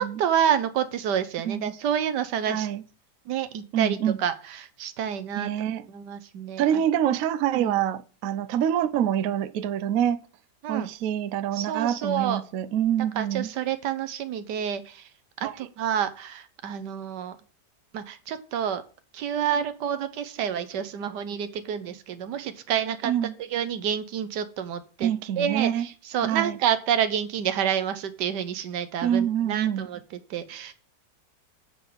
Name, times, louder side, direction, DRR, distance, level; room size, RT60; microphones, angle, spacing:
voice 1, 0.0-2.7 3.3-5.5 5.9-6.6 7.5-7.8 10.6-10.9 11.5-12.4 13.2-15.1 15.4-17.4 17.9-18.8 19.1-23.1 23.4-25.1 25.4-30.7, right 9 dB, 85° right, 1.4 m, -28 dB
voice 2, 2.5-2.8 3.7-4.2 5.4-5.8 6.6-10.2 10.7-13.5 15.4-15.6 23.0-23.3 25.0-25.9 26.2-26.6 29.0-29.9, right 10 dB, 70° right, 0.9 m, -26 dB
8.0 x 3.9 x 6.7 m
omnidirectional pair, 1.8 m